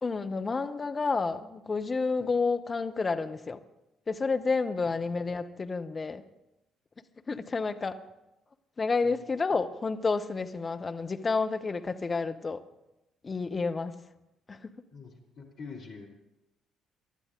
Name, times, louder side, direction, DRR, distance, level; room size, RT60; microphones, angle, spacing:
voice 1, 0.0-3.6 4.1-6.2 7.3-8.0 8.8-12.6 13.2-13.9 14.5-14.7, left 4 dB, 30° left, 8 dB, 0.9 m, -30 dB
voice 2, 14.9-16.1, left 5 dB, 55° left, -2 dB, 2.8 m, -45 dB
23.5 x 11.5 x 3.8 m, 0.93 s
figure-of-eight pair, 45°, 0 cm